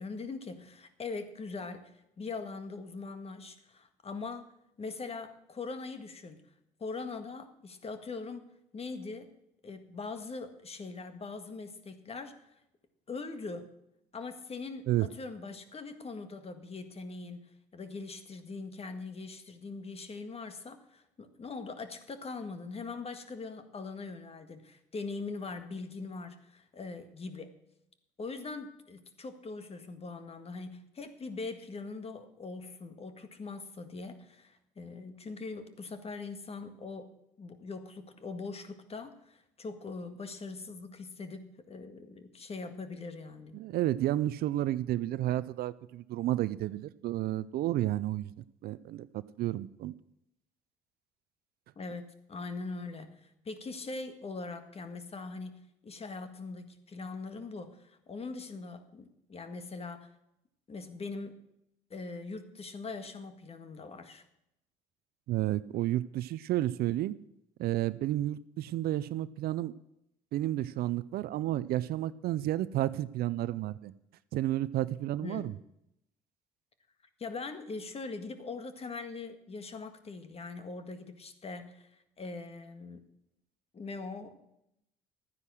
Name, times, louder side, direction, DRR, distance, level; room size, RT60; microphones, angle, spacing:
voice 1, 0.0-1.9 2.2-4.4 4.8-6.4 6.8-8.4 8.7-9.3 9.6-12.3 13.1-13.7 14.1-17.4 17.7-27.5 28.2-37.1 37.4-43.6 51.7-53.2 53.4-55.5 55.8-60.1 60.7-61.4 61.9-64.2 75.2-75.5 77.2-81.9 82.2-83.0 83.7-84.4, left 3 dB, 35° left, 9 dB, 1.8 m, -41 dB
voice 2, 43.5-49.1 49.4-49.9 65.3-67.1 67.6-69.7 70.3-73.9 74.3-75.5, right 14 dB, 60° right, 17 dB, 0.5 m, -31 dB
12.5 x 9.7 x 6.3 m, 0.82 s
hypercardioid pair, 65°, 17 cm